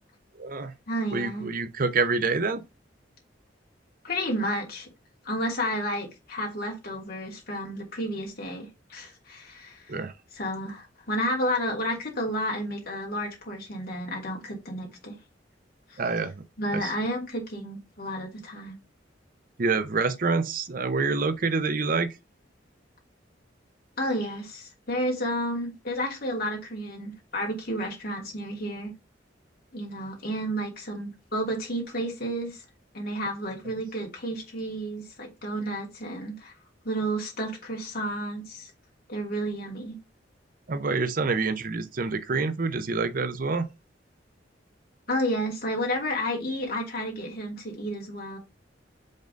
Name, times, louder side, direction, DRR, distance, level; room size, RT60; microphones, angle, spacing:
voice 1, 0.3-0.7 1.1-2.6 9.9-10.1 16.0-16.4 16.7-16.9 19.6-22.2 40.7-43.7, right 4 dB, 50° right, 0.6 m, -27 dB
voice 2, 0.9-1.5 4.0-4.9 5.2-10.0 10.3-15.1 15.9-16.0 16.6-18.7 24.0-28.9 29.7-32.6 32.9-36.5 36.8-38.7 39.1-40.0 45.1-48.4, equal, 55° left, 2.8 m, -31 dB
5.3 x 3.8 x 5.2 m
head